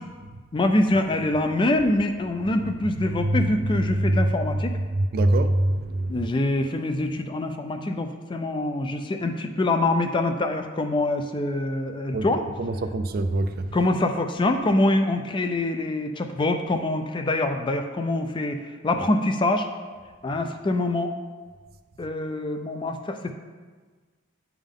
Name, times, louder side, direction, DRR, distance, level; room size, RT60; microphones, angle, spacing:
voice 1, 0.5-4.7 6.1-12.4 13.7-19.7 20.2-21.1 22.0-23.4, left 2 dB, 25° left, 6 dB, 0.4 m, -25 dB
voice 2, 3.9-4.3 4.9-6.3 12.1-12.2 12.6-13.8, right 1 dB, 45° right, 9 dB, 0.4 m, -24 dB
9.9 x 3.5 x 3.7 m, 1.4 s
head